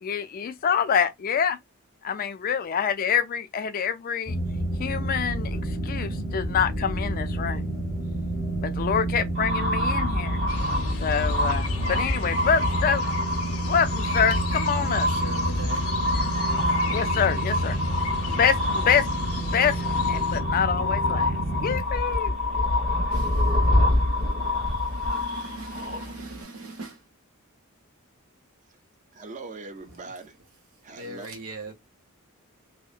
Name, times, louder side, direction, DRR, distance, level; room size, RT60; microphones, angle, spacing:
voice 1, 0.0-1.6 2.0-4.4 4.8-7.6 8.6-10.4 11.0-13.0 13.6-15.1 16.9-17.8 18.3-19.1 19.4-19.8 20.1-21.3 21.6-22.3, left 7 dB, 40° left, 0.3 m, -26 dB
sound 1, 4.3-21.8, right 1 dB, 5° right, 0.7 m, -29 dB
sound 2, 9.4-26.4, left 1 dB, 50° right, 1.2 m, -27 dB
sound 3, 10.5-20.4, left 4 dB, 75° left, 0.6 m, -38 dB
voice 2, 14.7-16.0 21.5-21.8 23.1-27.1 29.9-30.3 30.7-31.7, right 2 dB, 80° right, 0.9 m, -42 dB
voice 3, 29.1-30.4 30.8-31.4, right 3 dB, 35° right, 0.5 m, -41 dB
2.8 x 2.0 x 2.4 m
head